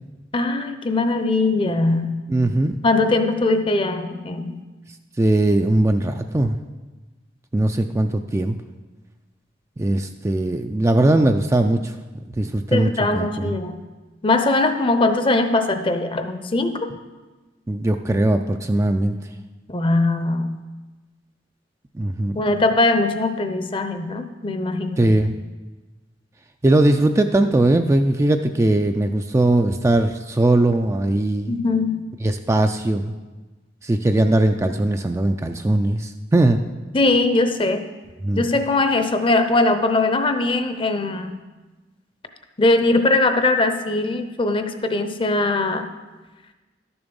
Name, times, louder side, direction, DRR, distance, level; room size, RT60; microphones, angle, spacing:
voice 1, 0.3-2.1 2.8-4.5 12.7-13.8 14.2-16.9 19.7-20.5 22.3-25.1 31.5-32.0 36.9-37.9 38.3-41.3 42.6-45.9, left 2 dB, 30° left, 8 dB, 0.7 m, -20 dB
voice 2, 2.3-2.8 5.2-6.6 7.5-8.6 9.8-11.9 12.4-13.5 17.7-19.2 22.0-22.3 25.0-25.4 26.6-31.5 32.2-33.1 33.8-36.6 38.2-38.4, right 1 dB, 15° right, 6 dB, 0.3 m, -19 dB
12.0 x 7.0 x 5.2 m, 1.2 s
head